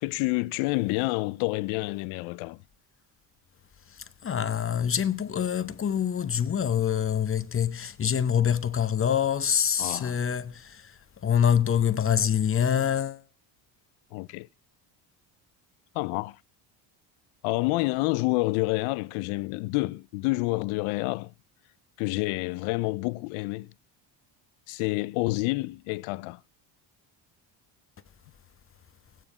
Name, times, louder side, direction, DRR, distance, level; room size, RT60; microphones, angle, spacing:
voice 1, 0.0-2.6 9.8-10.2 14.1-14.5 15.9-16.4 17.4-21.3 22.0-23.7 24.7-26.4, left 23 dB, 90° left, 0.6 m, -28 dB
voice 2, 4.2-10.9 11.2-13.2, left 8 dB, 25° left, 0.7 m, -25 dB
16.0 x 9.3 x 4.8 m
cardioid pair, 105°, 48 cm